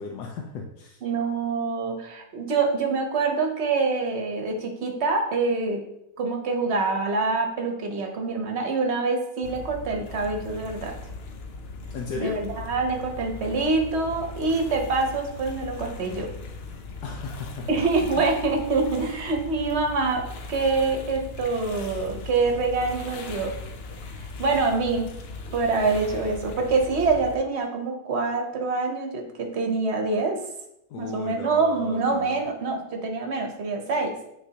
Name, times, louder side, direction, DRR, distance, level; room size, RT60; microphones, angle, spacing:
voice 1, 0.0-1.0 11.9-12.4 17.0-18.3 30.9-32.4, left 5 dB, 75° left, 1 dB, 1.2 m, -36 dB
voice 2, 1.0-5.8 6.2-10.9 12.2-16.3 17.7-20.2 20.5-23.5 24.4-25.1 25.5-30.4 31.0-34.1, right 3 dB, 50° right, 2 dB, 1.0 m, -25 dB
sound 1, 9.4-27.4, left 3 dB, 60° left, 0.6 m, -39 dB
9.4 x 3.7 x 2.8 m, 0.82 s
omnidirectional pair, 1.8 m